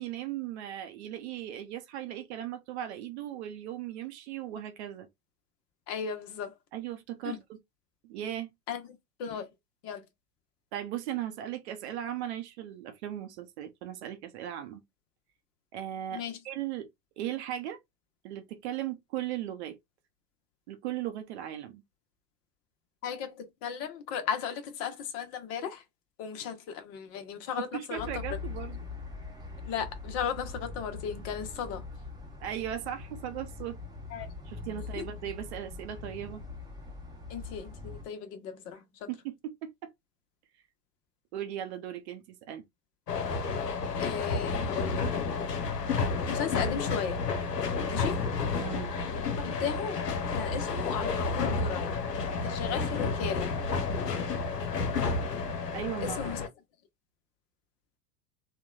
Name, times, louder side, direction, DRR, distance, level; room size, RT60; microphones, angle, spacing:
voice 1, 0.0-5.1 6.7-7.6 8.1-8.5 10.7-14.8 15.7-16.9 17.2-17.8 18.2-19.8 20.7-21.8 27.6-28.8 32.4-33.8 34.5-36.4 39.1-39.9 41.3-42.6 48.6-48.9 55.7-56.3, right 11 dB, 45° right, 0.6 m, -37 dB
voice 2, 5.9-6.5 7.2-7.4 8.7-9.5 9.8-10.0 16.1-16.4 23.0-25.8 26.2-28.4 29.6-31.8 34.1-34.3 35.0-35.1 37.3-39.1 44.0-45.0 46.3-47.2 47.9-48.2 49.1-50.0 50.3-51.9 52.4-53.5 56.0-56.4, left 7 dB, 30° left, 0.7 m, -36 dB
sound 1, 28.0-38.0, left 4 dB, 10° right, 0.9 m, -42 dB
sound 2, 43.1-56.5, left 4 dB, 85° left, 0.6 m, -31 dB
2.9 x 2.2 x 2.3 m
figure-of-eight pair, 90°, 47 cm